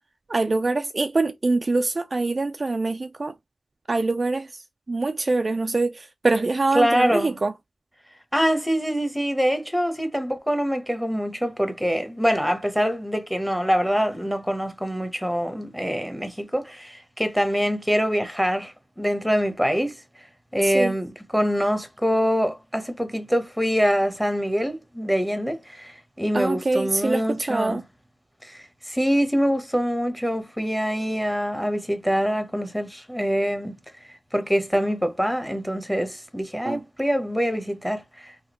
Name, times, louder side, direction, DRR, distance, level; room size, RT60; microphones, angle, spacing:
voice 1, 0.3-3.3 3.9-4.6 4.9-7.5 20.6-20.9 26.3-27.8 36.6-36.8, right 3 dB, 45° right, 0.3 m, -24 dB
voice 2, 6.7-7.4 8.3-20.0 20.5-27.8 28.4-33.7 34.3-38.3, equal, ahead, 0.9 m, -24 dB
3.4 x 2.2 x 2.9 m
cardioid pair, 55°, 0 cm